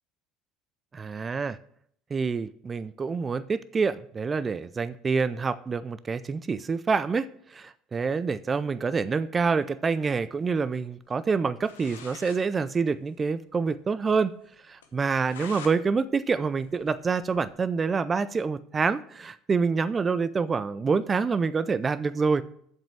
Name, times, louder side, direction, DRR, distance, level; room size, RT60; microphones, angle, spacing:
voice 1, 0.9-1.6 2.1-14.3 14.7-22.4, right 5 dB, 30° right, 15 dB, 0.4 m, -27 dB
sound 1, 11.6-12.4 12.8-12.9 13.1-13.2 13.6-13.7 14.1-14.2 14.8-15.8 16.2-17.5, left 6 dB, 90° left, 1.0 m, -46 dB
7.3 x 5.4 x 6.9 m, 0.65 s
hypercardioid pair, 80°, 0 cm